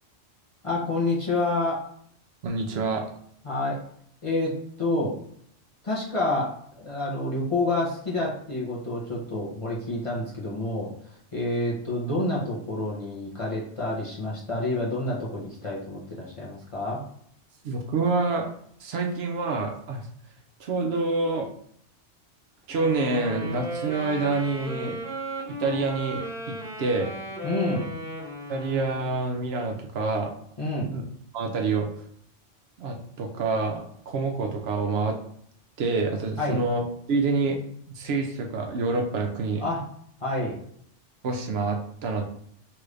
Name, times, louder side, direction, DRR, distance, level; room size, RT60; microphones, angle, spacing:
voice 1, 0.6-1.8 3.4-3.8 4.2-5.1 5.8-10.9 11.3-17.0 27.4-27.9 30.6-30.9 36.4-36.6 39.6-39.9 40.2-40.6, left 2 dB, 40° left, -5 dB, 0.5 m, -28 dB
voice 2, 2.4-3.0 17.6-18.5 18.8-20.0 20.6-21.5 22.7-25.0 25.5-27.1 28.5-30.3 30.8-31.0 31.3-31.9 32.8-33.8 34.1-35.2 35.8-36.8 37.1-37.6 37.9-39.6 41.2-42.3, right 3 dB, 65° right, 3 dB, 0.7 m, -27 dB
Wind instrument woodwind instrument, 22.7-29.2, right 1 dB, 5° right, 0.9 m, -35 dB
3.0 x 2.5 x 3.2 m, 0.65 s
omnidirectional pair, 1.3 m